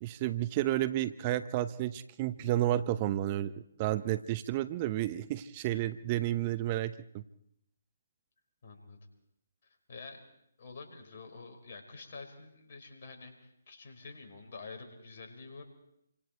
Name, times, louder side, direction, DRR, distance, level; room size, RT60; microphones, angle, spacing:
voice 1, 0.0-7.2, right 14 dB, 30° right, 13 dB, 0.8 m, -31 dB
voice 2, 8.6-9.0 9.9-10.2 10.6-15.6, left 4 dB, 50° left, 5 dB, 5.3 m, -48 dB
28.5 x 25.5 x 4.6 m, 0.76 s
figure-of-eight pair, 140°, 0 cm